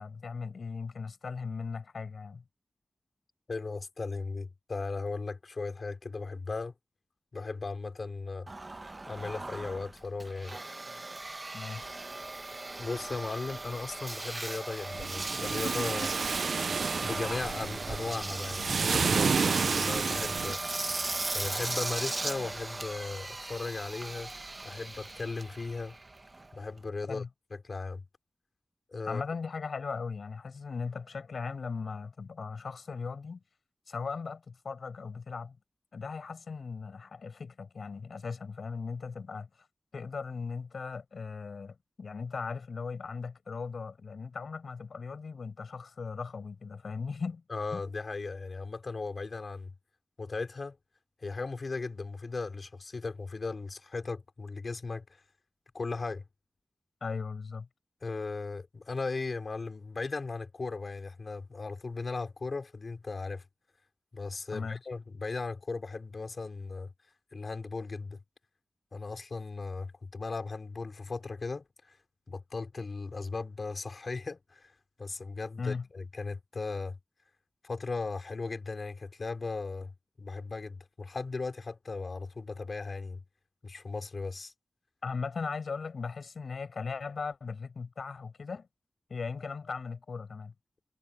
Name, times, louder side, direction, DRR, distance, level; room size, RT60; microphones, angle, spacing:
voice 1, 0.0-2.4 11.5-12.0 27.1-27.3 29.1-33.4 33.9-35.6 35.9-39.7 39.9-47.4 47.7-47.8 57.0-57.7 64.5-64.8 75.6-75.9 85.0-88.7 89.1-90.5, left 5 dB, 75° left, 6.3 m, -38 dB
voice 2, 3.5-6.7 7.3-8.5 9.0-10.6 12.8-16.1 17.0-20.6 21.3-24.3 24.6-26.0 26.5-27.2 27.5-28.0 28.9-29.2 47.5-49.7 50.2-50.8 51.2-55.2 55.7-56.2 58.0-63.4 64.1-66.9 67.3-68.2 68.9-72.0 72.3-74.7 75.0-77.0 77.6-79.9 80.2-83.2 83.6-84.5, left 3 dB, 50° left, 4.0 m, -37 dB
Engine, 8.5-26.9, right 2 dB, 30° right, 1.2 m, -38 dB
sound 1, 14.9-20.5, right 5 dB, 90° right, 0.4 m, -30 dB
wide cardioid pair, 115°, 0 cm